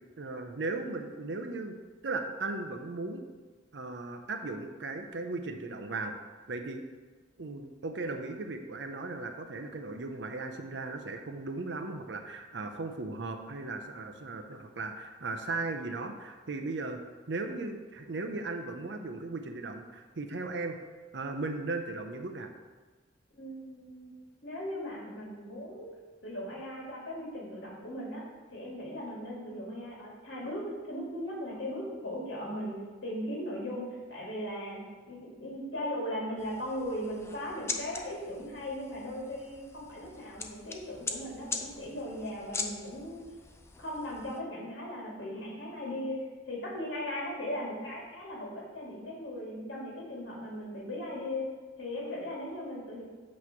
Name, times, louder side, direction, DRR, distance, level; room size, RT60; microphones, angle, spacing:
voice 1, 0.2-1.7 2.0-3.2 3.7-6.1 6.5-6.8 7.4-17.0 17.3-20.8 21.1-22.5, right 3 dB, 70° right, 6 dB, 0.7 m, -37 dB
voice 2, 23.3-24.1 24.4-25.9 26.2-28.2 28.5-43.2 43.8-51.5 51.8-53.0, left 1 dB, 75° left, -4 dB, 2.4 m, -38 dB
sound 1, 36.4-44.4, left 4 dB, 15° left, 0.4 m, -42 dB
8.4 x 3.2 x 5.8 m, 1.4 s
head